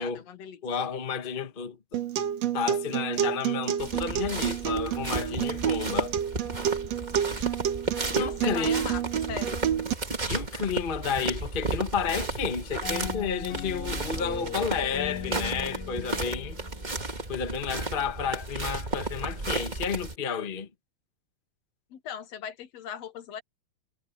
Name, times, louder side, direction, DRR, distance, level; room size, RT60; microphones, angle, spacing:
voice 1, 0.0-0.6 8.1-9.0 9.3-9.6 21.9-23.4, left 8 dB, 65° left, 2.1 m, -38 dB
voice 2, 0.6-2.0 2.5-6.1 8.1-8.8 10.3-16.6 17.3-20.7, left 6 dB, 30° left, 0.9 m, -31 dB
Acoustic guitar, 1.9-9.9, right 10 dB, 65° right, 2.2 m, -29 dB
sound 1, 3.8-20.1, right 2 dB, 20° right, 1.3 m, -34 dB
sound 2, 12.8-17.5, left 11 dB, 90° left, 2.8 m, -39 dB
omnidirectional pair, 3.3 m